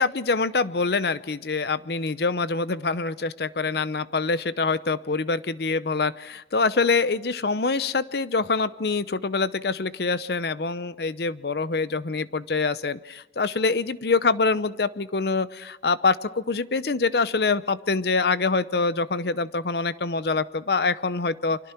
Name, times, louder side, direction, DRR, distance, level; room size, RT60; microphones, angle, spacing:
voice 1, 0.0-21.6, left 4 dB, 65° left, 15 dB, 0.7 m, -25 dB
29.5 x 24.0 x 4.5 m, 1.0 s
head